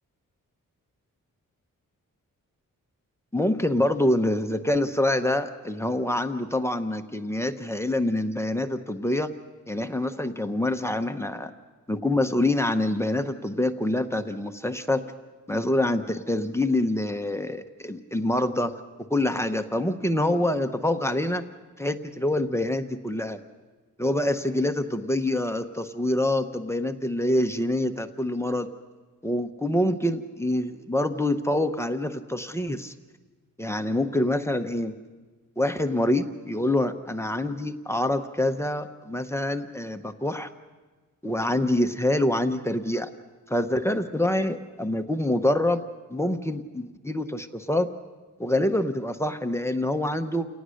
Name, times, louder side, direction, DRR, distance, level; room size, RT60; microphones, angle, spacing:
voice 1, 3.3-9.3 9.7-11.5 11.9-15.0 15.5-18.7 19.1-21.4 21.8-23.4 24.0-28.7 29.2-32.9 33.6-34.9 35.6-40.5 41.2-43.1 43.5-45.8 46.1-47.9 48.4-50.5, left 1 dB, 10° left, 6 dB, 0.7 m, -26 dB
29.5 x 18.5 x 6.4 m, 1.3 s
wide cardioid pair, 165°, 34 cm